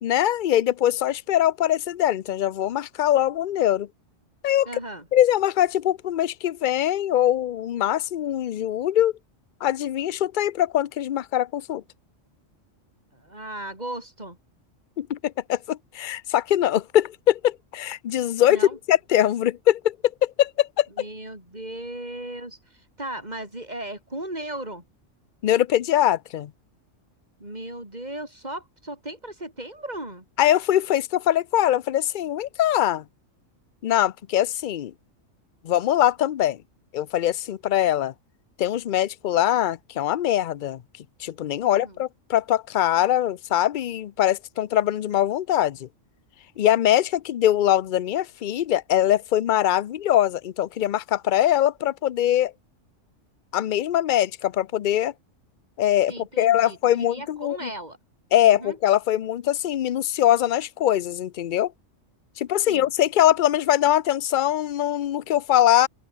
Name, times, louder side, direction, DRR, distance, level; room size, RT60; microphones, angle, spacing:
voice 1, 0.0-3.9 4.4-4.7 5.1-9.1 9.6-11.8 15.0-18.6 18.9-20.0 20.2-20.9 25.4-26.5 30.4-33.0 33.8-34.9 35.6-36.6 36.9-38.1 38.6-40.8 41.2-45.9 46.6-52.5 53.5-55.1 55.8-57.7 58.3-61.7 62.4-65.9, left 12 dB, 55° left, 0.5 m, -22 dB
voice 2, 4.7-5.1 13.1-14.4 18.4-18.8 21.0-24.8 27.4-30.3 41.6-42.0 56.1-58.0 58.4-58.8 62.7-62.9, right 1 dB, 30° right, 6.2 m, -36 dB
open air
omnidirectional pair, 1.3 m